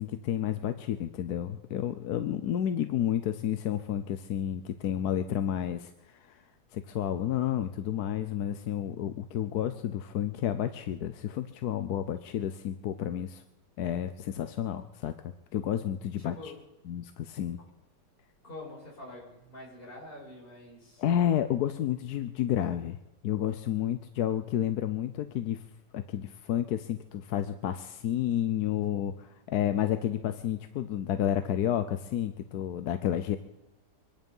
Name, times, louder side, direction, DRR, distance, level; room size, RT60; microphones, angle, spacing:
voice 1, 0.0-6.5 6.7-13.4 13.8-15.1 15.5-16.5 16.9-17.6 21.0-23.0 23.2-25.6 25.9-33.4, left 10 dB, 65° left, 9 dB, 1.1 m, -31 dB
voice 2, 16.2-16.6 17.6-17.7 18.4-21.0, left 2 dB, 30° left, -3 dB, 5.5 m, -46 dB
24.0 x 10.5 x 5.5 m, 0.96 s
omnidirectional pair, 2.0 m